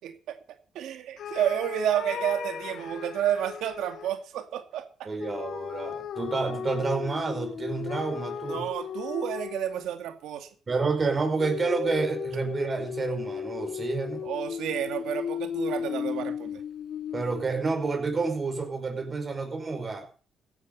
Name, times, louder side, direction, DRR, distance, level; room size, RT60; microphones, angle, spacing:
voice 1, 0.0-0.4 0.7-5.1 8.5-10.5 14.2-16.6, right 10 dB, 85° right, 7 dB, 2.2 m, -30 dB
sound 1, 1.2-4.1 5.2-10.0 11.4-17.5, left 8 dB, 65° left, 0.9 m, -35 dB
voice 2, 5.1-8.7 10.7-14.2 17.1-20.1, right 4 dB, 35° right, 4 dB, 5.4 m, -29 dB
16.0 x 10.5 x 5.5 m, 0.38 s
cardioid pair, 90°, 0 cm